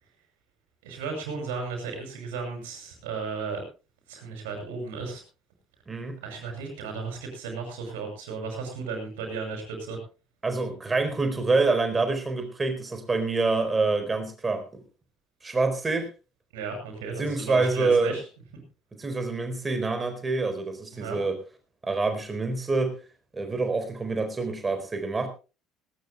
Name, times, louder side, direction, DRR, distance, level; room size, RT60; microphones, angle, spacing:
voice 1, 0.8-3.6 4.1-5.2 6.2-10.0 16.5-18.2 20.9-21.2, right 4 dB, 65° right, 2 dB, 6.2 m, -34 dB
voice 2, 5.9-6.2 10.4-14.6 15.4-16.1 17.2-18.1 19.0-21.4 21.8-23.0 23.3-25.3, right 3 dB, 20° right, 7 dB, 4.4 m, -26 dB
19.5 x 18.5 x 2.3 m, 0.32 s
figure-of-eight pair, 60°, 0 cm